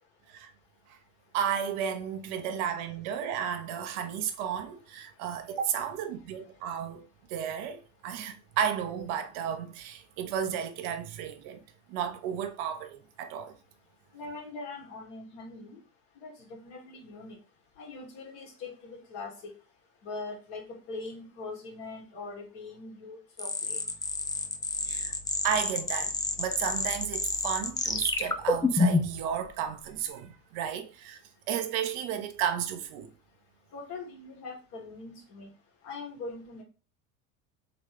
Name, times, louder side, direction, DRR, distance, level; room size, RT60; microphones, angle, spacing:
voice 1, 1.3-11.6 11.9-13.5 24.8-25.1 25.4-31.2 31.5-33.1, right 8 dB, 60° right, 0.9 m, -33 dB
voice 2, 14.1-15.8 16.2-17.4 17.8-19.5 20.0-23.8 33.7-35.5 35.8-36.6, left 3 dB, 60° left, 2.0 m, -42 dB
sound 1, 23.4-29.2, left 3 dB, 10° left, 0.4 m, -29 dB
3.9 x 3.2 x 3.3 m
hypercardioid pair, 85°, 44 cm